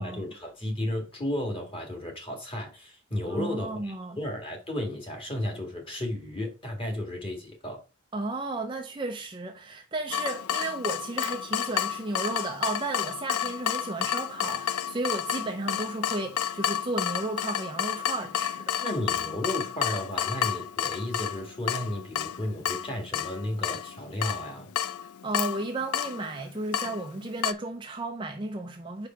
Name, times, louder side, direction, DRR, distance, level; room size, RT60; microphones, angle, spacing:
voice 1, 0.0-7.8 18.8-24.7, left 1 dB, 25° left, 2.0 m, -33 dB
voice 2, 3.3-4.2 8.1-18.6 25.2-29.1, right 2 dB, 20° right, 0.5 m, -33 dB
Water tap faucet / Drip, 10.1-27.5, left 10 dB, 85° left, 0.4 m, -31 dB
5.0 x 4.9 x 4.4 m
head